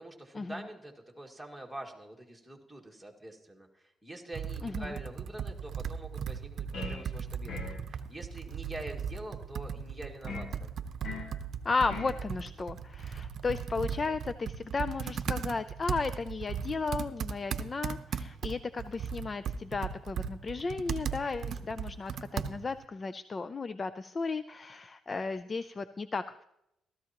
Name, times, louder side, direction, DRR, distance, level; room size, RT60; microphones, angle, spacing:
voice 1, 0.0-10.7, right 1 dB, ahead, -1 dB, 2.1 m, -45 dB
Computer keyboard, 4.3-22.8, right 7 dB, 60° right, 0.7 m, -37 dB
voice 2, 4.6-4.9 11.6-26.4, left 4 dB, 30° left, 13 dB, 0.4 m, -34 dB
sound 1, 6.7-7.1 7.5-7.8 10.3-10.5 11.0-11.4 11.9-12.2, left 4 dB, 70° left, 1.8 m, -40 dB
16.0 x 13.5 x 3.0 m, 0.82 s
cardioid pair, 110°, 0 cm